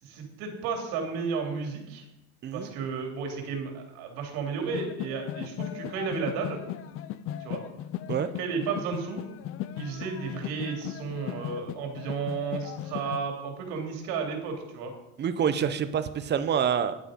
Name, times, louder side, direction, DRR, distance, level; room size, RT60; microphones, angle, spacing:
voice 1, 0.0-2.0 2.5-6.6 7.4-7.6 8.3-9.3 9.8-14.9, right 5 dB, 70° right, 2 dB, 3.3 m, -33 dB
sound 1, 4.7-13.2, left 11 dB, 35° left, 0.5 m, -37 dB
voice 2, 15.2-17.0, right 8 dB, 30° right, 11 dB, 0.8 m, -27 dB
10.5 x 9.0 x 5.2 m, 0.90 s
cardioid pair, 145°, 38 cm